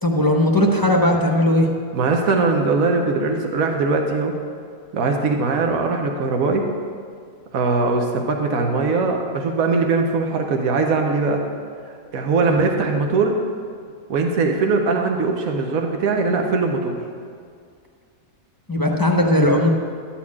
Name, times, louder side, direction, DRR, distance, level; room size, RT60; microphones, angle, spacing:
voice 1, 0.0-1.7 12.4-12.6 18.7-19.7, left 1 dB, 20° left, 0 dB, 0.7 m, -18 dB
voice 2, 1.9-4.3 4.9-6.6 7.5-11.4 11.9-13.4 14.1-17.0, right 4 dB, 80° right, 3 dB, 1.3 m, -21 dB
12.5 x 4.4 x 8.5 m, 2.2 s
omnidirectional pair, 1.4 m